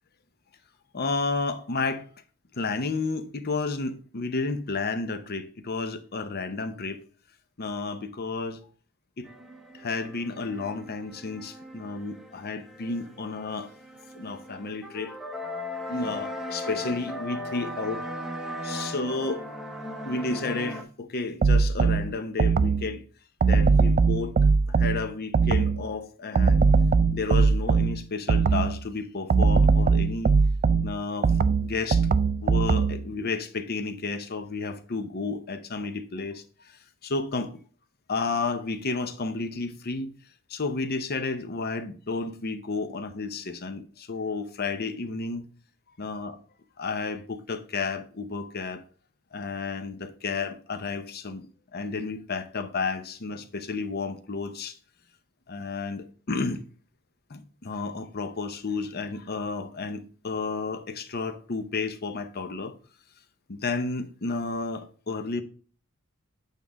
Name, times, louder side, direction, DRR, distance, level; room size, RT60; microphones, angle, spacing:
voice 1, 0.9-2.0 2.5-7.0 7.6-8.6 9.2-9.3 9.7-13.7 14.1-15.2 15.9-18.1 18.6-19.4 20.0-23.0 23.4-24.3 24.7-26.6 27.1-30.4 30.8-31.3 31.6-32.1 32.4-37.5 38.1-40.1 40.5-45.5 46.0-46.4 46.8-48.8 49.3-51.5 51.7-54.8 55.5-56.6 57.3-62.8 63.5-65.4, left 3 dB, 45° left, 0.7 m, -32 dB
sound 1, 9.2-20.8, left 1 dB, ahead, 0.7 m, -38 dB
sound 2, 21.4-22.9 23.4-25.9 26.4-28.8 29.3-33.1, right 4 dB, 35° right, 0.3 m, -21 dB
8.2 x 3.7 x 4.0 m
head